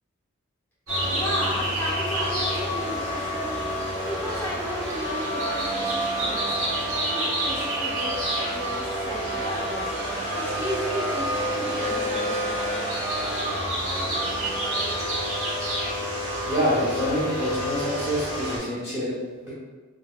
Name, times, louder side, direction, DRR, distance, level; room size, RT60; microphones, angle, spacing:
sound 1, 0.9-18.6, right 1 dB, 65° right, 1.2 m, -28 dB
voice 1, 1.1-12.7, left 1 dB, 10° left, -10 dB, 1.3 m, -34 dB
voice 2, 16.5-19.5, equal, 10° right, -12 dB, 0.7 m, -27 dB
3.9 x 3.0 x 2.3 m, 1.4 s
head